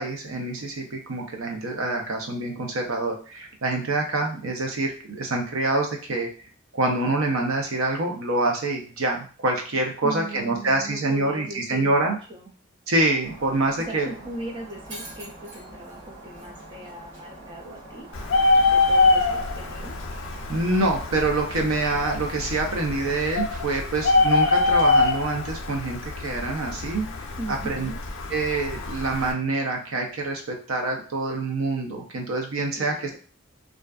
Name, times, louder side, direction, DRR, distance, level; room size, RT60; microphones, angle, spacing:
voice 1, 0.0-6.3 6.7-12.2 12.9-14.1 20.5-27.0 27.5-27.9 28.3-33.2, right 2 dB, 90° right, 2 dB, 0.6 m, -26 dB
voice 2, 10.0-12.5 13.9-18.1 18.7-20.0 27.4-28.0 32.7-33.2, right 1 dB, 25° right, 1 dB, 0.3 m, -38 dB
Shatter, 13.2-23.2, right 1 dB, 70° right, 1.5 m, -44 dB
Bird, 18.1-29.3, left 3 dB, 75° left, 0.4 m, -24 dB
2.5 x 2.3 x 2.2 m, 0.40 s
head